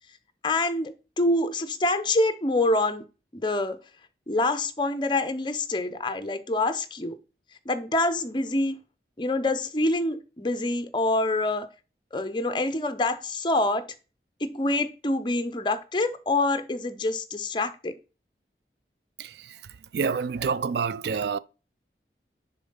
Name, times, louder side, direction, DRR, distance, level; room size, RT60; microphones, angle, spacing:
voice 1, 0.4-3.0 3.3-3.8 4.3-7.2 7.7-8.8 9.2-11.7 12.1-13.9 14.4-17.9, left 2 dB, 25° left, 0.6 m, -26 dB
voice 2, 19.9-21.4, right 5 dB, 70° right, 0.4 m, -27 dB
6.9 x 3.8 x 5.5 m
head